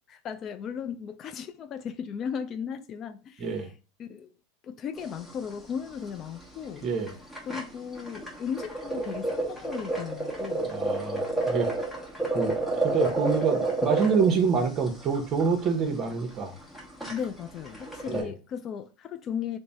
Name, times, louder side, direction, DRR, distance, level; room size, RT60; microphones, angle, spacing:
voice 1, 0.1-3.7 4.0-4.3 4.6-6.9 7.5-10.8 17.1-19.6, left 7 dB, 40° left, 0.3 m, -36 dB
voice 2, 3.4-3.7 6.8-7.1 10.7-11.7 12.3-16.6 18.1-18.3, right 5 dB, 40° right, 0.8 m, -27 dB
sound 1, 5.0-5.4 5.7-5.8 6.1-6.3 6.8-6.9 7.1-18.2, right 2 dB, ahead, 1.0 m, -30 dB
3.2 x 2.1 x 3.9 m
hypercardioid pair, 95°, 0 cm